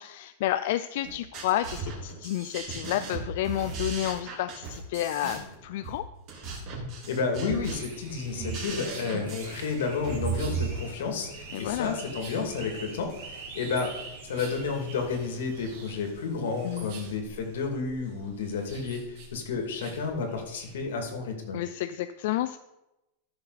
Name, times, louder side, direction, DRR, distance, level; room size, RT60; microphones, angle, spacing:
voice 1, 0.0-6.1 11.5-12.0 16.6-16.9 21.5-22.6, left 13 dB, 50° left, 11 dB, 0.3 m, -30 dB
sound 1, 1.0-10.6, right 4 dB, 35° right, 2.9 m, -36 dB
voice 2, 7.1-13.9 14.2-21.6, left 4 dB, 80° left, 4 dB, 2.5 m, -31 dB
sound 2, 7.6-20.8, right 4 dB, 50° right, 2.8 m, -45 dB
14.0 x 6.6 x 4.2 m, 0.95 s
supercardioid pair, 175°, 0 cm